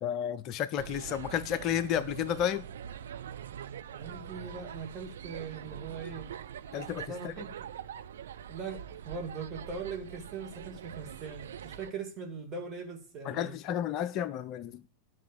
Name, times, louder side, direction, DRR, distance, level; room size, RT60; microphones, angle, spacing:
voice 1, 0.0-2.6 6.7-7.3 13.3-14.8, left 10 dB, 35° left, 0.4 m, -32 dB
sound 1, 0.8-11.9, right 9 dB, 60° right, 0.7 m, -44 dB
voice 2, 3.9-6.3 7.1-7.5 8.5-13.6, right 5 dB, 25° right, 2.4 m, -40 dB
10.5 x 6.0 x 8.4 m
figure-of-eight pair, 90°, 0 cm